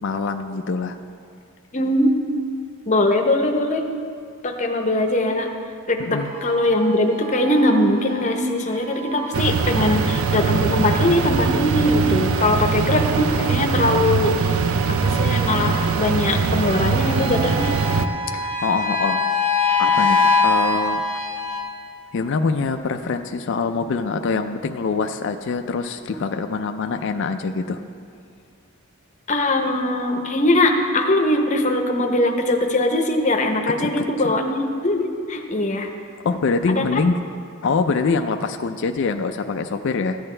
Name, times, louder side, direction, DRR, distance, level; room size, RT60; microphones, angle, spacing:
voice 1, 0.0-1.0 6.0-6.3 9.8-10.0 18.3-19.3 19.8-21.1 22.1-27.8 33.8-34.0 36.2-37.2 37.6-40.2, left 4 dB, 55° left, 7 dB, 0.4 m, -24 dB
voice 2, 1.7-2.3 2.9-3.9 4.4-5.5 5.9-14.6 14.9-17.8 29.3-35.9 36.7-36.9, left 1 dB, 30° left, 3 dB, 0.8 m, -21 dB
sound 1, 6.2-21.6, left 4 dB, 50° right, 2.3 m, -26 dB
sound 2, 9.3-18.1, right 5 dB, 70° right, 0.4 m, -22 dB
14.0 x 8.8 x 3.3 m, 2.3 s
head